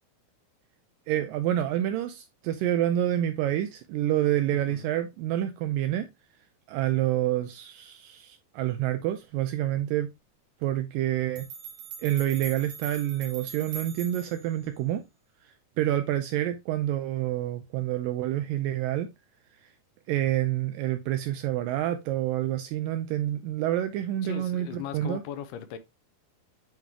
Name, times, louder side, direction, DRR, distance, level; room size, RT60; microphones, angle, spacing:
voice 1, 1.1-6.1 6.7-10.1 10.6-11.5 12.0-15.0 15.4-19.1 19.6-19.7 20.1-25.2, right 13 dB, 85° right, 1.9 m, -28 dB
voice 2, 4.5-4.9 24.2-25.8, left 9 dB, 85° left, 2.6 m, -38 dB
sound 1, 11.4-14.5, right 7 dB, 65° right, 1.6 m, -41 dB
9.1 x 3.7 x 2.8 m
omnidirectional pair, 4.5 m